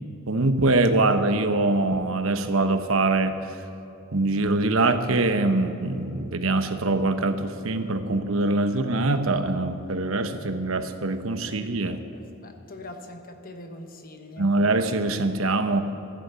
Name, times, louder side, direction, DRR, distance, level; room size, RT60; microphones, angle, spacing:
voice 1, 0.3-3.4 4.1-12.0 14.4-15.8, right 2 dB, 80° right, 8 dB, 1.0 m, -23 dB
voice 2, 12.1-14.6, left 1 dB, 45° left, 6 dB, 1.3 m, -42 dB
15.0 x 11.0 x 6.9 m, 2.9 s
head